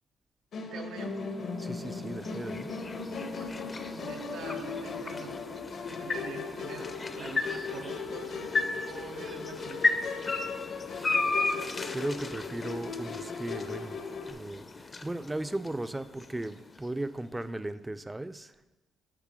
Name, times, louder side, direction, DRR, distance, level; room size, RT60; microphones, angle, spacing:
Musical instrument, 0.5-14.3, left 4 dB, 65° left, 1.0 m, -38 dB
voice 1, 0.6-1.2 3.8-5.5 5.9-9.9, right 6 dB, 85° right, 4 dB, 0.6 m, -46 dB
sound 1, 1.0-17.2, left 3 dB, 30° left, 0.6 m, -35 dB
voice 2, 1.6-2.8 3.4-3.5 10.9-11.4 11.9-14.0 14.3-18.5, right 1 dB, 15° right, 12 dB, 0.4 m, -37 dB
9.9 x 3.3 x 6.2 m, 1.1 s
cardioid pair, 90°, 0 cm